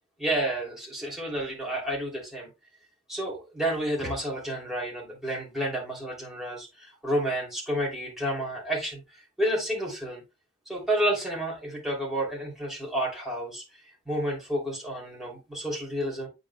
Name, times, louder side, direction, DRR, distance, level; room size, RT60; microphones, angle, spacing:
voice 1, 0.2-2.5 3.1-9.0 9.4-10.2 10.7-13.6 14.1-16.3, right 1 dB, ahead, 2.9 m, -30 dB
8.4 x 5.2 x 2.2 m
head